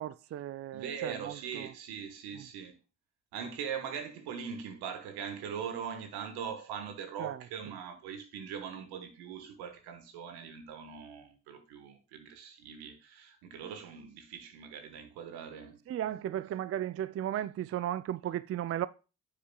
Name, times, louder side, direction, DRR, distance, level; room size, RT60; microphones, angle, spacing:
voice 1, 0.0-1.7 2.4-2.5 7.2-7.4 15.9-18.9, right 11 dB, 40° right, 0.4 m, -35 dB
voice 2, 0.7-2.7 3.3-15.8, right 7 dB, 80° right, 1.4 m, -41 dB
9.2 x 7.3 x 2.3 m
hypercardioid pair, 50°, 38 cm